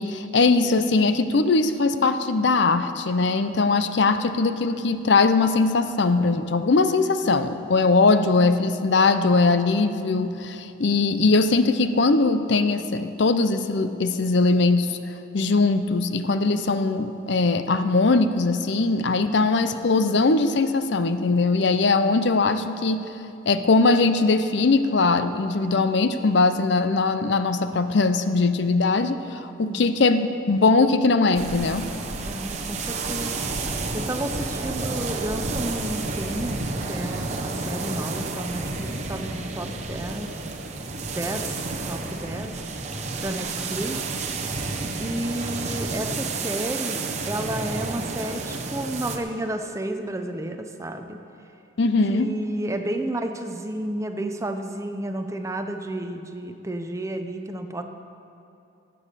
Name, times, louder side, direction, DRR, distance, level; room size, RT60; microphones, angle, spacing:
voice 1, 0.0-23.0 23.5-31.9 51.8-52.3, left 3 dB, 60° left, 10 dB, 0.6 m, -21 dB
sound 1, 31.3-49.2, right 3 dB, 35° right, 0.9 m, -30 dB
voice 2, 32.2-33.3 33.9-40.3 41.1-41.6 41.9-42.5 43.2-44.0 45.0-51.2 52.1-57.8, right 1 dB, 15° right, 6 dB, 0.6 m, -31 dB
14.5 x 8.5 x 6.7 m, 2.7 s
head